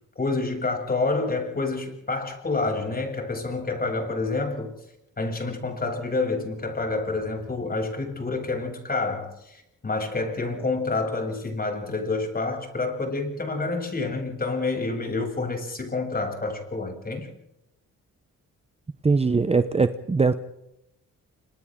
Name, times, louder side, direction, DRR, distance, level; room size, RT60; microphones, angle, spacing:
voice 1, 0.2-4.7 5.2-17.3, left 3 dB, 30° left, 3 dB, 7.8 m, -28 dB
voice 2, 19.0-20.3, right 4 dB, 20° right, 11 dB, 0.9 m, -21 dB
30.0 x 27.0 x 3.8 m, 0.84 s
cardioid pair, 130°, 32 cm